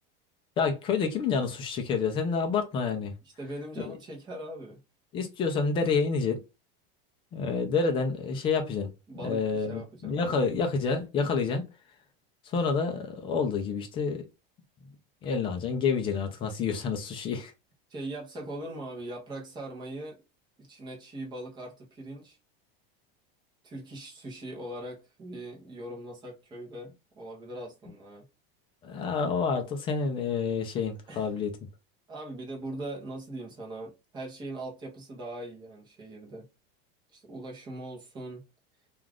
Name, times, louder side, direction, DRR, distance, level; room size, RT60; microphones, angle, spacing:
voice 1, 0.6-3.1 3.8-3.9 5.1-6.4 7.3-8.9 9.2-11.6 12.4-14.2 15.2-17.5 28.8-31.5, left 5 dB, 20° left, 0.4 m, -28 dB
voice 2, 3.4-4.8 9.1-10.4 17.9-20.2 20.6-22.4 23.6-28.3 31.1-31.4 32.1-36.5 37.1-38.4, right 1 dB, 15° right, 0.7 m, -41 dB
2.4 x 2.4 x 3.3 m
supercardioid pair, 165°, 29 cm